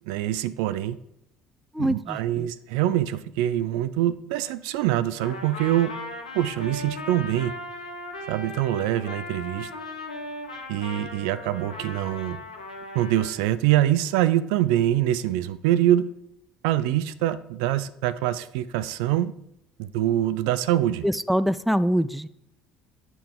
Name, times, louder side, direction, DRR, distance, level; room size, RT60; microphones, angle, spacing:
voice 1, 0.1-1.0 1.8-5.9 6.3-7.5 8.3-9.7 10.7-12.4 12.9-16.1 16.6-19.3 19.8-21.1, right 13 dB, 70° right, 14 dB, 0.3 m, -24 dB
voice 2, 1.7-2.5 21.0-22.3, equal, ahead, 16 dB, 0.4 m, -24 dB
Trumpet, 5.2-13.4, left 1 dB, 90° left, 0.8 m, -38 dB
8.3 x 5.6 x 3.6 m, 0.80 s
figure-of-eight pair, 55°, 4 cm